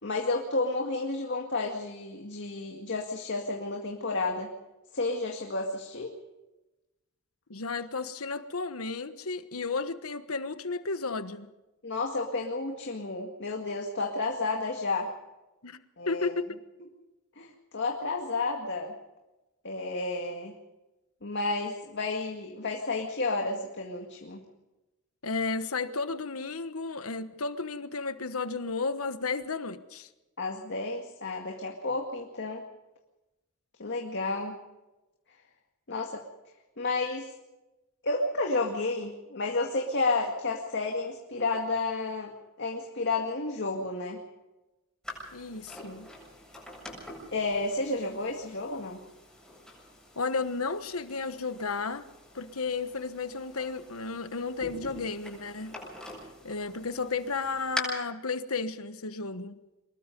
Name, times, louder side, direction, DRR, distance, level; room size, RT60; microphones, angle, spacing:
voice 1, 0.0-4.5 4.9-6.1 11.8-15.1 16.0-16.3 17.4-18.9 19.6-20.5 21.2-24.4 30.4-32.6 33.8-34.6 35.9-36.2 36.8-37.3 38.0-42.3 42.6-44.2 47.3-49.0, left 3 dB, 55° left, 2 dB, 2.1 m, -31 dB
voice 2, 7.5-11.5 15.6-15.8 16.1-16.5 25.2-30.1 45.3-46.1 50.2-52.0 52.3-55.8 56.4-59.6, left 4 dB, 85° left, 11 dB, 1.3 m, -33 dB
sound 1, 45.0-57.8, left 1 dB, 5° left, 7.7 m, -45 dB
24.5 x 21.0 x 5.3 m, 1.0 s
head